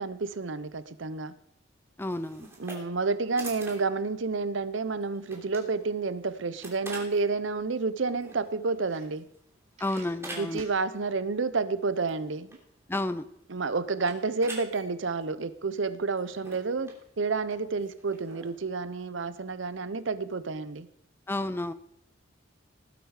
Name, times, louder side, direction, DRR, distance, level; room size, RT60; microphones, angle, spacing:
voice 1, 0.0-1.3 2.6-9.3 10.3-12.6 13.5-20.9, right 4 dB, 70° right, 0.7 m, -30 dB
voice 2, 2.0-2.5 9.8-10.6 12.9-13.2 21.3-21.7, left 1 dB, 10° left, 0.5 m, -31 dB
sound 1, 2.1-18.6, right 2 dB, 15° right, 3.3 m, -48 dB
sound 2, 8.8-9.5 9.7-10.8, right 4 dB, 40° right, 4.0 m, -51 dB
19.0 x 8.1 x 4.9 m
head